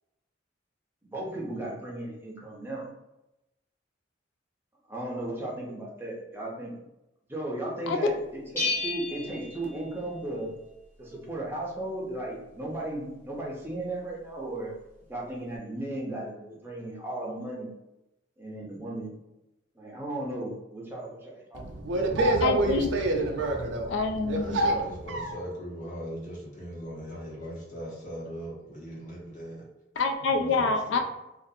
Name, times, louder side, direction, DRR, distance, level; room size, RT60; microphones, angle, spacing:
voice 1, 1.0-2.9 4.9-6.7 7.3-10.5 11.0-14.7 15.1-17.7 18.4-19.1 19.8-21.8, right 1 dB, 10° right, 0.6 m, -35 dB
Bell, 8.6-10.4, left 3 dB, 15° left, 0.9 m, -33 dB
voice 2, 21.5-23.9 24.3-25.4, right 2 dB, 70° right, 0.5 m, -27 dB
voice 3, 22.4-22.9 23.9-24.6 30.0-31.0, left 4 dB, 75° left, 0.3 m, -26 dB
voice 4, 24.4-29.6 30.3-31.0, equal, 40° left, 1.0 m, -39 dB
2.4 x 2.4 x 2.6 m
head